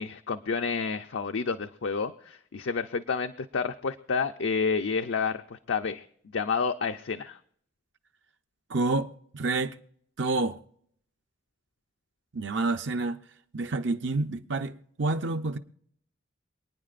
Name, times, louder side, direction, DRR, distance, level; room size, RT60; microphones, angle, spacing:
voice 1, 0.0-6.0 6.3-7.4, left 5 dB, 75° left, 0.5 m, -30 dB
voice 2, 8.7-9.8 10.2-10.6 12.3-13.2 13.5-15.6, right 3 dB, 65° right, 0.6 m, -28 dB
28.0 x 9.6 x 2.5 m
head